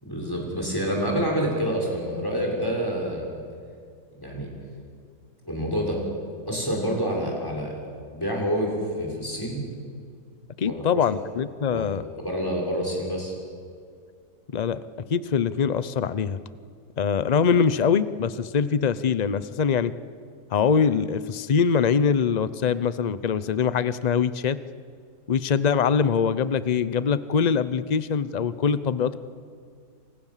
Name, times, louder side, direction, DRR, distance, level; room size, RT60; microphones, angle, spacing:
voice 1, 0.0-3.3 4.2-4.5 5.4-6.0 6.5-7.7 8.1-9.6 10.7-11.0 11.7-11.8 12.1-13.4, equal, 15° left, -1 dB, 6.5 m, -27 dB
voice 2, 10.6-12.0 14.5-14.8 15.1-16.4 17.0-19.9 20.5-24.6 25.3-29.2, left 6 dB, 35° left, 15 dB, 0.7 m, -23 dB
29.0 x 26.0 x 7.4 m, 2.2 s
omnidirectional pair, 1.6 m